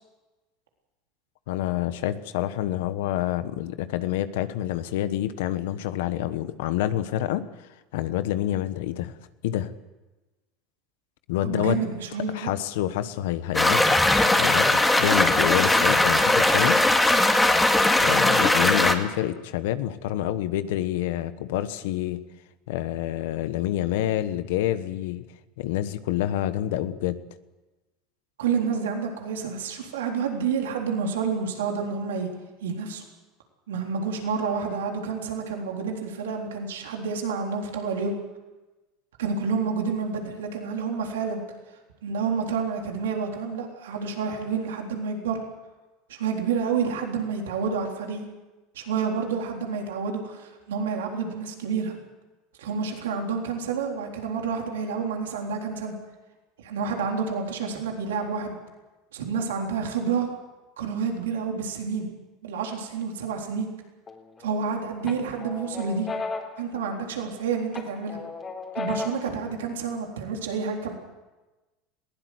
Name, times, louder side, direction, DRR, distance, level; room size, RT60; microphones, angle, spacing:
voice 1, 1.5-9.1 9.4-9.7 11.3-11.8 12.3-14.0 14.4-16.8 18.0-22.2 22.7-25.2 25.6-27.2, left 13 dB, 75° left, 12 dB, 1.2 m, -27 dB
voice 2, 11.4-12.5 28.4-32.3 32.6-33.0 33.7-38.1 39.2-41.4 42.0-45.4 46.1-48.3 48.8-52.0 52.6-55.9 56.6-58.6 59.1-60.3 60.8-62.1 62.4-63.7 64.4-66.1 66.6-68.2 68.8-70.9, right 5 dB, 85° right, 2 dB, 3.7 m, -29 dB
sound 1, 13.5-18.9, left 2 dB, 10° left, 2.3 m, -19 dB
sound 2, 64.1-64.7 65.1-67.4 67.7-69.4, left 4 dB, 30° left, 3.8 m, -35 dB
21.5 x 16.5 x 8.0 m, 1.1 s
hypercardioid pair, 95°, 0 cm